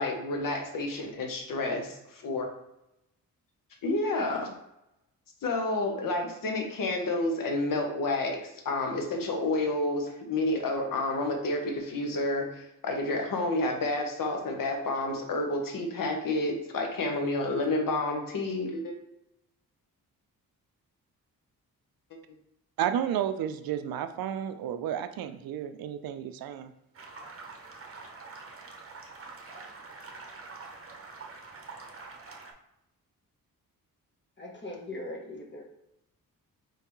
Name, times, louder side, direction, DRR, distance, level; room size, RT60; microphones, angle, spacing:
voice 1, 0.0-2.5 3.8-4.5 5.4-18.9, left 2 dB, 65° left, 3 dB, 1.0 m, -30 dB
voice 2, 22.8-26.7, right 10 dB, 75° right, 10 dB, 0.5 m, -32 dB
sound 1, 26.9-32.5, right 3 dB, 40° right, 0.8 m, -45 dB
voice 3, 34.4-35.6, left 1 dB, 30° left, -1 dB, 1.1 m, -40 dB
4.6 x 3.3 x 3.0 m, 0.86 s
cardioid pair, 80°, 36 cm